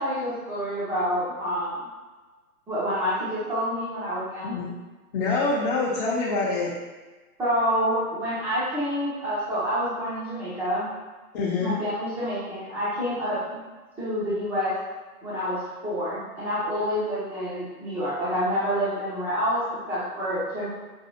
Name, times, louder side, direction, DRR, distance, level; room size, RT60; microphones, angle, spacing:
voice 1, 0.0-1.8 2.7-4.6 7.4-10.9 11.6-13.6 14.0-14.8 15.2-20.7, equal, 5° right, -10 dB, 0.4 m, -28 dB
voice 2, 5.1-6.7 11.3-11.7, left 3 dB, 35° left, -6 dB, 0.7 m, -25 dB
5.3 x 2.2 x 3.0 m, 1.3 s
hypercardioid pair, 130°, 45 cm